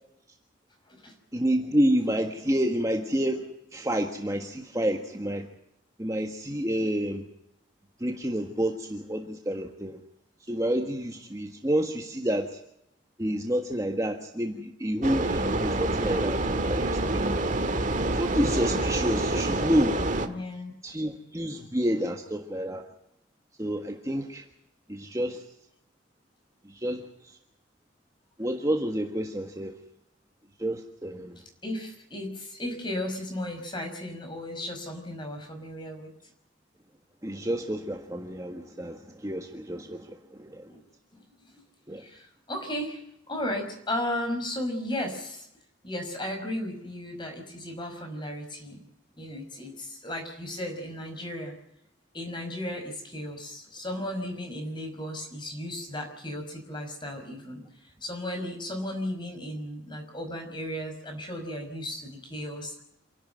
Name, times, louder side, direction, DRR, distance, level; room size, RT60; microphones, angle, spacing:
voice 1, 1.3-5.5 6.0-7.3 8.0-10.0 10.4-12.6 13.2-17.4 18.1-20.0 20.8-22.9 23.6-24.4 24.9-25.4 26.6-27.4 28.4-29.7 30.6-31.4 37.2-40.8 41.9-42.0, equal, 15° right, 3 dB, 1.6 m, -29 dB
sound 1, 15.0-20.3, right 2 dB, 40° right, 1.7 m, -27 dB
voice 2, 20.2-20.7 31.6-36.1 40.7-40.8 41.1-41.6 42.0-45.5 45.8-48.8 49.2-51.6 52.1-62.8, left 1 dB, 25° left, 4 dB, 5.5 m, -35 dB
28.0 x 12.0 x 9.2 m, 0.77 s
head